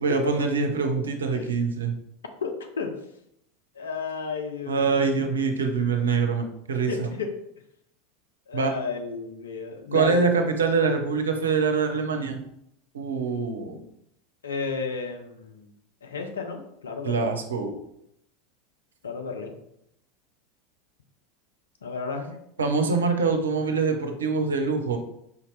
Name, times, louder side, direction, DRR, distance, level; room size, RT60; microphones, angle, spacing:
voice 1, 0.0-2.0 4.7-7.1 8.5-8.7 9.9-12.4 12.9-13.8 17.0-17.8 22.6-25.0, right 4 dB, 70° right, 5 dB, 0.6 m, -24 dB
voice 2, 2.4-2.9 3.8-5.0 6.9-7.3 8.5-10.2 14.4-15.7 16.0-17.3 19.0-19.5 21.8-22.3, left 4 dB, 70° left, 4 dB, 0.6 m, -32 dB
4.8 x 2.8 x 3.2 m, 0.76 s
figure-of-eight pair, 80°, 0 cm